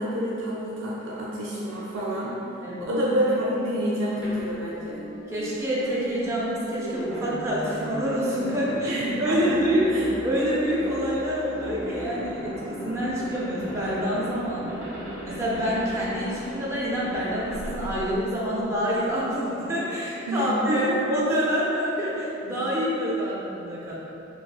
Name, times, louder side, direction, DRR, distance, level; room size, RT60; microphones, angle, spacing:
voice 1, 0.0-5.0 8.8-10.1 20.3-21.0, equal, 80° right, -5 dB, 0.4 m, -28 dB
sound 1, 4.2-18.8, right 1 dB, 25° left, 1.2 m, -37 dB
voice 2, 5.3-9.8 10.2-14.8 15.2-24.0, equal, 15° right, -8 dB, 0.4 m, -27 dB
3.0 x 2.9 x 2.3 m, 3.0 s
head